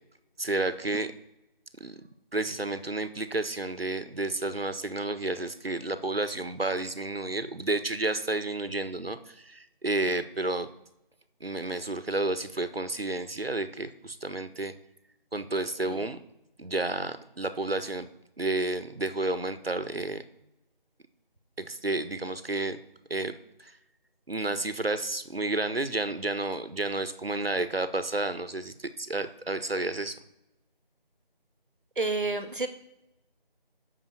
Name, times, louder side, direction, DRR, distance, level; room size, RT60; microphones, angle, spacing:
voice 1, 0.4-1.1 1.8-2.0 2.3-10.7 11.4-14.7 15.3-16.2 16.6-18.1 18.4-20.2 21.6-22.8 23.1-23.3 23.6-23.7 24.3-30.1, right 2 dB, 85° right, 12 dB, 1.5 m, -31 dB
voice 2, 32.0-32.7, right 3 dB, 60° right, 9 dB, 1.8 m, -30 dB
10.5 x 7.4 x 8.1 m, 0.89 s
figure-of-eight pair, 170°, 29 cm